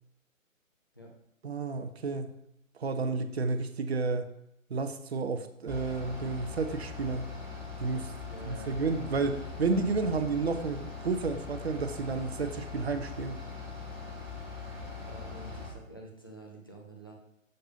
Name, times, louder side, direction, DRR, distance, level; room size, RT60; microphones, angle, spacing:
voice 1, 1.4-2.3 2.8-4.3 4.7-7.3 7.8-8.1 8.4-13.4, right 4 dB, 50° right, 9 dB, 0.6 m, -31 dB
Bus / Idling, 5.7-15.7, left 4 dB, 5° right, 1.2 m, -41 dB
voice 2, 8.3-9.0 15.0-17.1, right 1 dB, 20° left, -2 dB, 0.4 m, -48 dB
6.5 x 5.3 x 2.7 m, 0.80 s
figure-of-eight pair, 130°, 41 cm